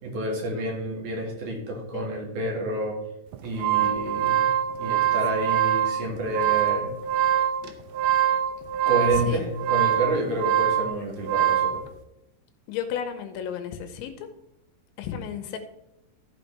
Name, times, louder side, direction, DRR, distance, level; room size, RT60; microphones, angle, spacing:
voice 1, 0.0-3.0 3.4-4.5 4.8-6.9 8.9-11.8, right 1 dB, 55° right, 0 dB, 2.7 m, -29 dB
sound 1, 3.3-11.8, right 10 dB, 80° right, 2.9 m, -24 dB
voice 2, 12.7-14.3 15.0-15.6, left 8 dB, 85° left, 7 dB, 3.2 m, -33 dB
14.5 x 5.9 x 3.3 m, 0.88 s
omnidirectional pair, 5.4 m